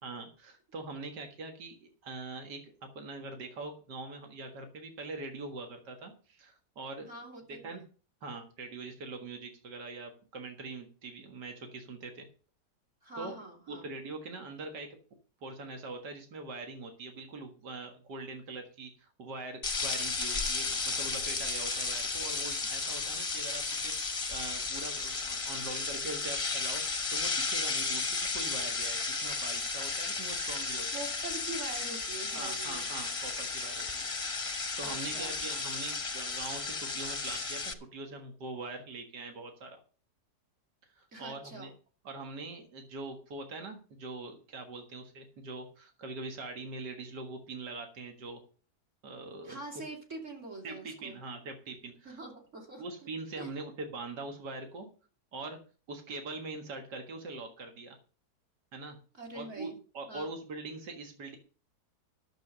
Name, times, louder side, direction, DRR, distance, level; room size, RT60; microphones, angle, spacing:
voice 1, 0.0-2.6 3.0-7.1 7.5-7.8 8.2-12.3 13.2-13.4 13.7-14.9 15.4-26.8 27.1-31.0 32.3-39.7 40.9-41.7 42.0-48.4 49.0-49.8 50.6-52.2 52.8-54.9 55.3-55.6 55.9-58.0 58.7-59.0 59.3-61.4, right 3 dB, 80° right, 5 dB, 2.3 m, -43 dB
voice 2, 7.1-7.8 13.0-13.8 30.9-32.9 34.8-35.4 41.1-41.7 49.4-51.2 52.0-52.8 53.4-53.5 59.2-59.8 60.1-60.3, right 2 dB, 45° right, 0 dB, 3.3 m, -44 dB
sound 1, 19.6-37.7, left 4 dB, 25° left, 0.8 m, -34 dB
10.5 x 7.2 x 6.6 m, 0.38 s
omnidirectional pair, 1.8 m